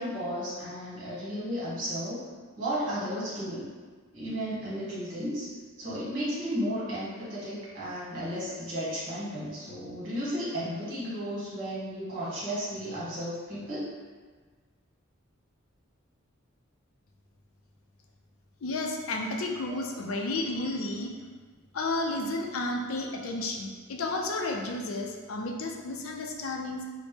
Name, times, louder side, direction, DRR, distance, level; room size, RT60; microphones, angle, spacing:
voice 1, 0.0-2.2 2.6-3.7 4.1-5.5 5.8-13.9 19.6-20.2 20.5-20.7, equal, 40° right, -9 dB, 1.4 m, -34 dB
voice 2, 18.6-21.1 21.7-26.8, left 2 dB, 75° left, 1 dB, 0.5 m, -32 dB
4.2 x 2.1 x 3.2 m, 1.4 s
head